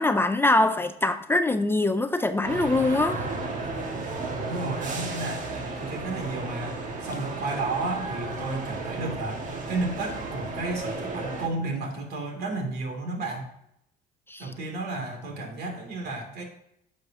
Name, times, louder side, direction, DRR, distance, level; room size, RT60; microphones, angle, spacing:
voice 1, 0.0-3.2 14.3-14.5, left 2 dB, 15° left, 0.4 m, -23 dB
sound 1, 2.4-11.5, right 3 dB, 50° right, 1.7 m, -33 dB
voice 2, 4.4-13.5 14.4-16.4, right 2 dB, 70° right, 2.6 m, -32 dB
10.5 x 6.5 x 2.8 m
cardioid pair, 110°, 17 cm